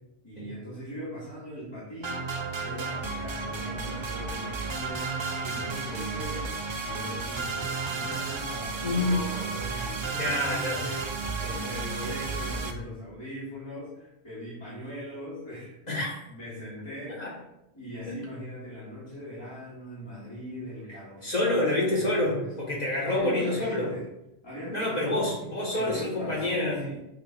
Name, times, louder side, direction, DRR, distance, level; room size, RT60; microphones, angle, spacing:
voice 1, 0.2-6.5 6.8-15.8 16.3-17.4 17.7-21.6 21.9-22.5 23.0-24.1 24.4-25.4 25.7-27.0, equal, 25° left, -11 dB, 2.3 m, -40 dB
sound 1, 2.0-12.7, right 4 dB, 40° right, 0.4 m, -33 dB
voice 2, 8.8-9.1 10.1-10.8 15.9-16.1 17.2-17.3 18.1-18.2 21.2-23.9 24.7-26.8, left 1 dB, 40° left, -4 dB, 1.8 m, -27 dB
8.3 x 4.4 x 2.5 m, 0.89 s
omnidirectional pair, 1.1 m